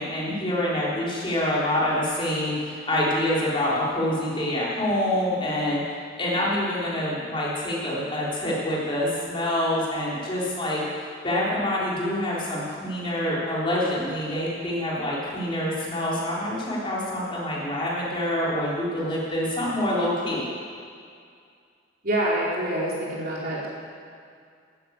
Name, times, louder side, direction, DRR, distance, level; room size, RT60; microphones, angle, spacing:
voice 1, 0.0-5.8 6.2-10.8 11.2-20.5, left 1 dB, 30° left, -6 dB, 3.6 m, -26 dB
voice 2, 22.0-23.7, right 1 dB, 55° right, -5 dB, 3.7 m, -26 dB
12.0 x 10.5 x 8.1 m, 2.2 s
head